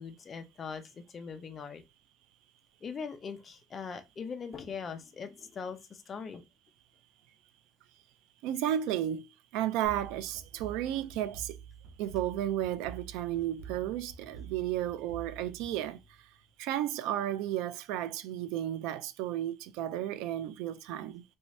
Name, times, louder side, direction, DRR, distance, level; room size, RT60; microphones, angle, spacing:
voice 1, 0.0-1.8 2.8-6.4, left 6 dB, 30° left, 0.5 m, -41 dB
voice 2, 8.4-9.3 9.5-11.6 12.0-16.0 16.6-21.2, right 12 dB, 90° right, 0.4 m, -33 dB
sound 1, 9.8-16.5, right 7 dB, 70° right, 1.3 m, -48 dB
3.5 x 2.7 x 3.2 m
cardioid pair, 150°, 0 cm